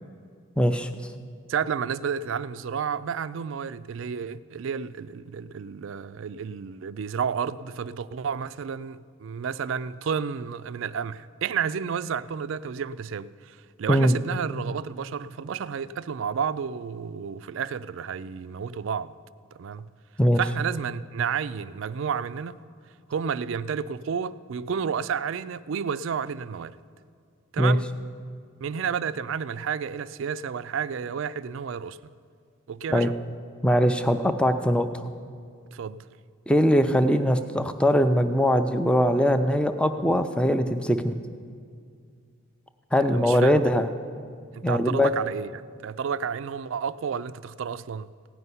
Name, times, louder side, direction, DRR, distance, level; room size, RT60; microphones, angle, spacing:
voice 1, 0.6-0.9 13.9-14.2 20.2-20.4 27.6-27.8 32.9-33.1 33.6-35.1 36.5-41.2 42.9-43.9 44.6-45.1, equal, 5° left, 0.4 m, -21 dB
voice 2, 1.5-19.1 19.5-19.9 20.4-22.6 23.1-26.8 27.5-27.9 28.6-32.0 32.7-33.2 35.7-36.1 43.1-43.7 44.5-48.1, right 7 dB, 65° right, 0.3 m, -31 dB
16.5 x 5.6 x 9.6 m
head